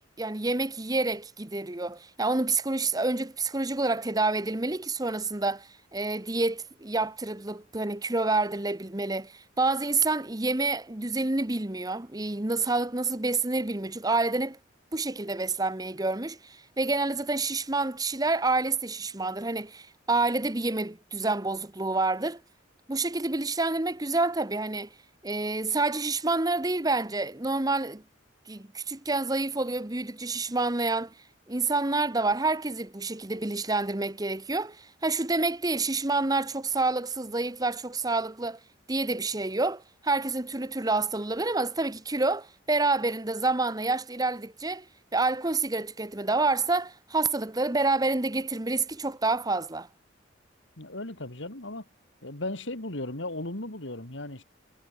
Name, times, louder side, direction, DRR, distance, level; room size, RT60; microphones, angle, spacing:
voice 1, 0.0-14.6 14.9-22.4 22.9-24.9 25.2-28.0 28.5-31.1 31.5-38.6 38.9-44.8 45.1-49.9, right 3 dB, 20° right, 1.1 m, -28 dB
voice 2, 50.8-51.8 52.2-54.4, left 2 dB, 70° left, 3.3 m, -36 dB
head